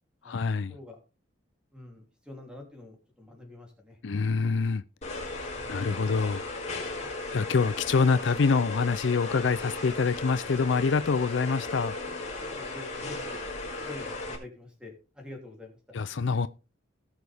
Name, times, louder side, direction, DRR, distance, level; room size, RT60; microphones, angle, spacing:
voice 1, 0.2-0.7 4.0-4.8 5.7-6.7 7.3-11.9 15.9-16.5, left 4 dB, 65° left, 0.5 m, -26 dB
voice 2, 1.7-4.0 4.4-4.5 5.5-6.0 7.0-7.1 9.7-9.9 12.4-13.4 13.8-16.0 16.3-16.4, left 2 dB, 5° right, 3.0 m, -47 dB
sound 1, 5.0-14.4, left 2 dB, 35° left, 4.0 m, -36 dB
18.5 x 6.4 x 3.5 m
head